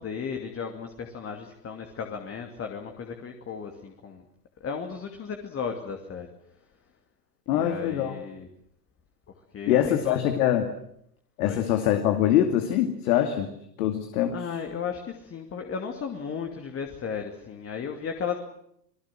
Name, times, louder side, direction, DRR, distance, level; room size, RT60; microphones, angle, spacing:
voice 1, 0.0-4.2 4.6-6.3 7.5-8.5 9.5-10.4 11.4-11.6 14.2-18.4, left 6 dB, 25° left, 4 dB, 2.6 m, -35 dB
voice 2, 7.5-8.1 9.7-10.7 11.4-13.5 13.8-14.4, left 11 dB, 60° left, 6 dB, 2.5 m, -23 dB
27.5 x 19.5 x 7.7 m, 0.73 s
hypercardioid pair, 100°, 49 cm